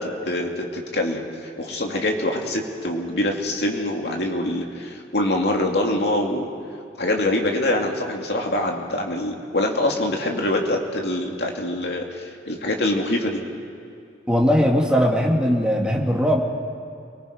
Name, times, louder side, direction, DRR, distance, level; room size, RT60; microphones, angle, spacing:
voice 1, 0.0-6.5 7.0-13.4, left 1 dB, 70° left, 1 dB, 2.6 m, -24 dB
voice 2, 14.3-16.4, equal, 5° right, -1 dB, 2.2 m, -19 dB
29.0 x 19.5 x 5.2 m, 2.6 s
head